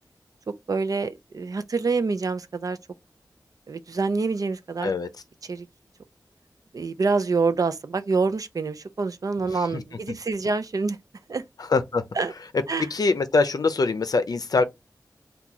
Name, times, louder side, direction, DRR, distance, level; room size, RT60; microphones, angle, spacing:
voice 1, 0.7-2.8 3.7-4.9 5.5-5.7 6.7-11.0 11.3-11.4 12.2-12.3 12.7-12.9, right 4 dB, 60° right, 0.4 m, -26 dB
voice 2, 11.6-12.0 12.9-14.6, left 3 dB, 65° left, 0.5 m, -23 dB
2.9 x 2.3 x 3.7 m
wide cardioid pair, 70°, 7 cm